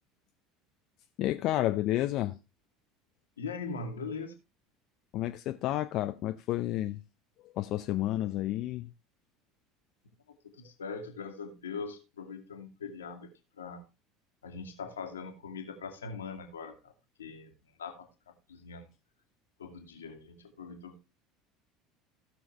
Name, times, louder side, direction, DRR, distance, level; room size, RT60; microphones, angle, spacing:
voice 1, 1.2-2.4 5.1-7.0 7.4-8.9, left 14 dB, 55° left, 0.7 m, -31 dB
voice 2, 3.4-4.4 10.5-13.3 13.6-13.8 14.4-16.9 17.2-17.5 17.8-18.9 19.6-21.0, left 4 dB, 80° left, 2.0 m, -41 dB
16.0 x 6.4 x 3.2 m
figure-of-eight pair, 70°, 0 cm